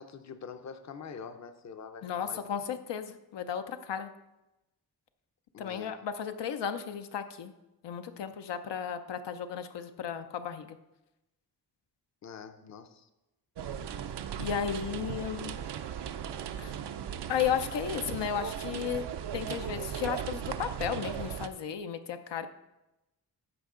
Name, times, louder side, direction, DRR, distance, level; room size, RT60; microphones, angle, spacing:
voice 1, 0.0-2.4 5.5-5.9 12.2-13.1, left 6 dB, 40° left, 9 dB, 0.6 m, -45 dB
voice 2, 2.0-4.1 5.6-7.5 7.8-10.8 14.4-15.6 16.6-16.8 17.3-19.1 19.3-22.5, left 8 dB, 85° left, 8 dB, 0.7 m, -34 dB
sound 1, 13.6-21.5, right 9 dB, 70° right, 0.6 m, -37 dB
14.0 x 5.3 x 3.7 m, 0.97 s
wide cardioid pair, 120°, 42 cm